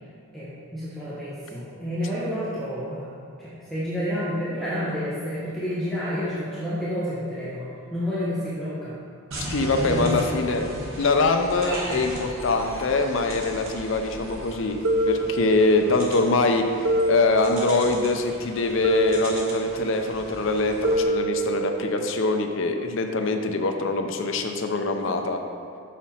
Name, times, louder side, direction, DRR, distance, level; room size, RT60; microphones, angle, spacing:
voice 1, 0.3-3.1 3.4-8.9 9.8-10.4, equal, ahead, -11 dB, 1.0 m, -30 dB
sound 1, 9.3-21.0, right 1 dB, 70° right, 1.4 m, -37 dB
voice 2, 9.5-10.7 11.0-14.8 15.0-16.6 17.1-25.4, left 3 dB, 60° left, 5 dB, 0.5 m, -23 dB
sound 2, 14.8-16.0 16.8-18.0 18.8-20.0 20.8-22.0, right 2 dB, 90° right, 0.6 m, -25 dB
6.0 x 5.8 x 4.2 m, 2.3 s
head